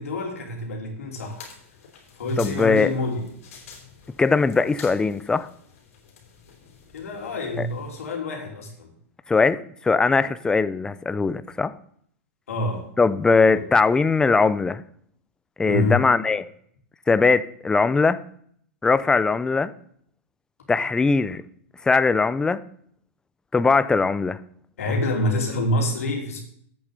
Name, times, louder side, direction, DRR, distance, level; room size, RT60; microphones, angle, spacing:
voice 1, 0.0-1.5 2.1-3.2 6.9-8.9 12.5-12.9 13.5-13.6 15.6-16.1 24.8-26.4, left 1 dB, 90° left, 2 dB, 3.1 m, -27 dB
sound 1, 1.1-8.1, left 6 dB, 75° left, 3.5 m, -48 dB
voice 2, 2.4-2.9 4.2-5.5 9.3-11.7 13.0-14.8 15.6-16.4 17.1-18.2 18.8-19.7 20.7-21.4 21.8-22.6 23.5-24.4, left 4 dB, 10° left, 14 dB, 0.5 m, -20 dB
8.5 x 6.9 x 6.8 m, 0.64 s
hypercardioid pair, 130°, 8 cm